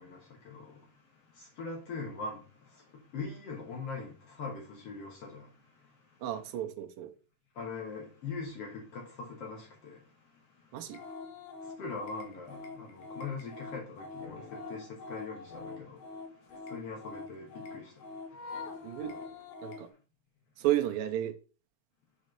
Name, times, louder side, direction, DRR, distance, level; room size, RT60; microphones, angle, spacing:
voice 1, 0.0-6.2 7.5-11.1 11.6-19.0, left 4 dB, 60° left, 1.8 m, -43 dB
voice 2, 6.2-7.1 10.7-11.0 18.8-19.1 19.6-19.9 20.6-21.3, right 13 dB, 85° right, 2.5 m, -32 dB
sound 1, 10.9-19.9, left 3 dB, 85° left, 2.9 m, -45 dB
6.2 x 4.2 x 5.2 m
omnidirectional pair, 4.0 m